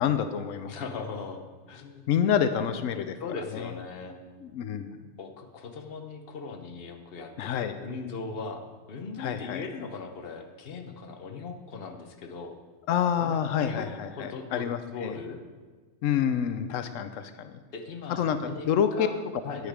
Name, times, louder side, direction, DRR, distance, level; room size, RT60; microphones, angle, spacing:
voice 1, 0.0-0.7 2.1-3.2 3.5-3.7 4.4-5.0 7.4-7.8 9.2-9.6 12.9-15.2 16.0-17.5 18.1-19.1 19.6-19.7, left 8 dB, 90° left, 10 dB, 1.0 m, -28 dB
voice 2, 0.7-2.1 3.2-4.2 5.2-12.6 13.2-13.9 14.1-15.4 17.7-19.7, left 4 dB, 50° left, 5 dB, 1.1 m, -39 dB
9.7 x 8.1 x 5.0 m, 1.4 s
omnidirectional pair, 1.3 m